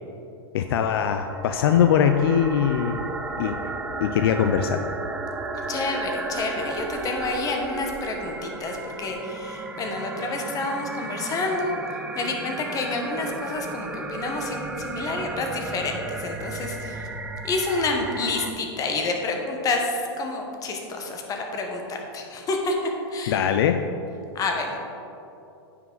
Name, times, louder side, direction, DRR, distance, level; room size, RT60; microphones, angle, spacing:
voice 1, 0.5-3.0 3.4-3.6 4.0-4.9 23.3-23.9, left 8 dB, 70° left, 7 dB, 0.4 m, -21 dB
sound 1, 0.7-18.5, right 3 dB, 10° right, 0.5 m, -34 dB
voice 2, 5.7-17.1 17.4-23.4 24.3-24.8, left 3 dB, 25° left, 2 dB, 1.2 m, -29 dB
9.3 x 5.9 x 4.0 m, 2.8 s
hypercardioid pair, 120°, 13 cm